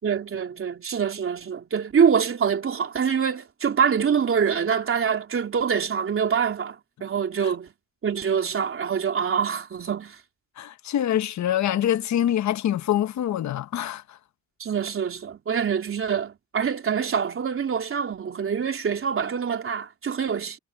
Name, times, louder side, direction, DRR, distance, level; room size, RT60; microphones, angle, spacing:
voice 1, 0.0-7.7 8.0-10.2 14.6-20.6, right 7 dB, 45° right, 3.5 m, -25 dB
voice 2, 10.6-14.2, left 11 dB, 65° left, 1.2 m, -25 dB
cardioid pair, 90°, 30 cm